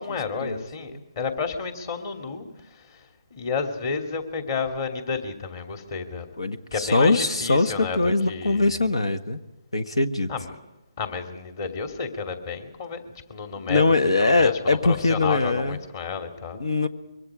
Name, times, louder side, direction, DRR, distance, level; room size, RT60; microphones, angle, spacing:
voice 1, 0.0-3.1 3.3-6.3 6.7-8.7 10.3-10.6 11.0-13.8 14.2-16.6, left 5 dB, 40° left, 5 dB, 2.7 m, -31 dB
voice 2, 6.4-9.4 9.7-10.3 13.6-15.8 16.6-16.9, left 3 dB, 85° left, 13 dB, 1.6 m, -22 dB
25.0 x 23.0 x 5.0 m, 1.0 s
figure-of-eight pair, 150°, 3 cm